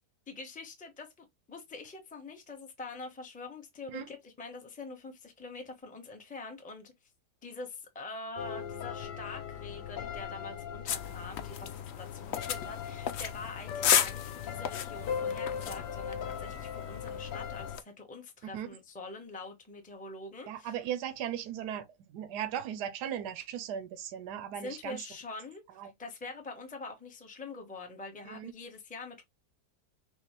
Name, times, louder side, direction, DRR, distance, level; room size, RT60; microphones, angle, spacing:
voice 1, 0.3-6.9 7.4-20.8 24.6-29.2, left 3 dB, 5° left, 0.9 m, -45 dB
sound 1, 8.4-17.8, left 8 dB, 85° left, 1.4 m, -39 dB
sound 2, 10.9-17.8, left 9 dB, 70° left, 0.6 m, -34 dB
voice 2, 20.5-21.8 22.1-25.0 25.8-25.9 28.3-28.5, right 10 dB, 75° right, 1.2 m, -37 dB
6.5 x 2.5 x 3.2 m
omnidirectional pair, 1.8 m